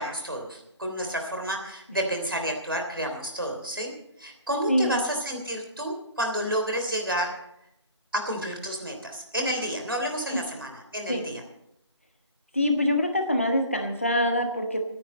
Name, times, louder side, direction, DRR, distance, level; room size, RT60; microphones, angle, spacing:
voice 1, 0.0-3.9 4.2-7.5 8.1-11.4, equal, 50° right, 3 dB, 3.3 m, -30 dB
voice 2, 12.5-14.8, left 1 dB, 25° left, 4 dB, 1.4 m, -24 dB
23.5 x 10.0 x 4.2 m, 0.79 s
figure-of-eight pair, 175°, 15 cm